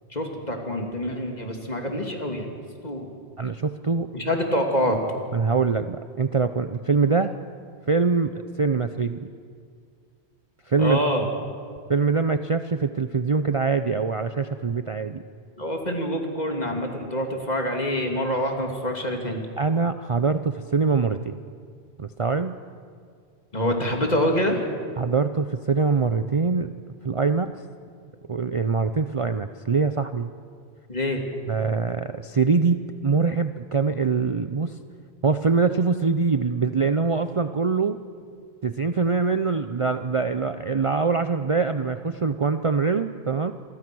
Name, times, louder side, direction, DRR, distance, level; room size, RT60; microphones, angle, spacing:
voice 1, 0.1-2.5 2.8-3.1 4.1-5.0 10.8-11.3 15.6-19.4 23.5-24.6 30.9-31.2, equal, 40° left, 3 dB, 2.9 m, -26 dB
voice 2, 3.4-4.1 5.3-7.4 7.9-9.2 10.7-11.0 11.9-15.2 19.6-21.4 22.0-22.6 25.0-26.7 27.0-27.6 28.3-30.3 31.5-34.8 35.2-38.0 38.6-43.5, right 4 dB, 35° right, 10 dB, 0.6 m, -23 dB
27.5 x 23.0 x 6.2 m, 2.2 s
omnidirectional pair, 1.1 m